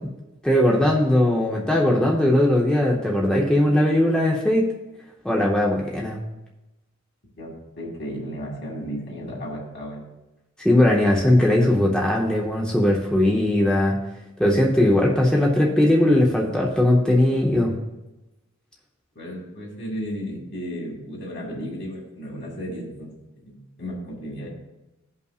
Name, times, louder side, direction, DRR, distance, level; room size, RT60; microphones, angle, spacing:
voice 1, 0.4-4.7 5.2-6.2 10.6-14.0 14.4-17.8, left 1 dB, 5° left, -3 dB, 0.7 m, -19 dB
voice 2, 7.4-10.1 19.1-24.5, equal, 55° left, -2 dB, 2.4 m, -34 dB
16.0 x 5.5 x 2.4 m, 1.0 s
head